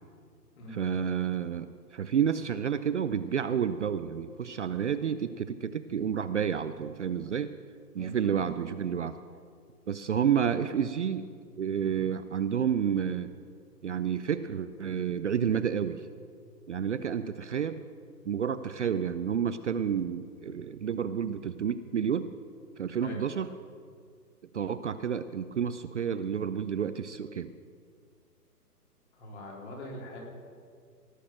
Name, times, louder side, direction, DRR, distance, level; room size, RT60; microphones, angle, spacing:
voice 1, 0.7-7.5 7.9-9.1 9.9-11.3 11.6-13.3 13.8-16.1 16.7-17.8 18.3-22.3 22.8-23.5 24.5-27.5, right 8 dB, 50° right, 11 dB, 0.5 m, -30 dB
voice 2, 29.1-30.2, left 1 dB, 45° left, -1 dB, 3.6 m, -42 dB
17.5 x 6.6 x 7.6 m, 2.1 s
hypercardioid pair, 155°, 48 cm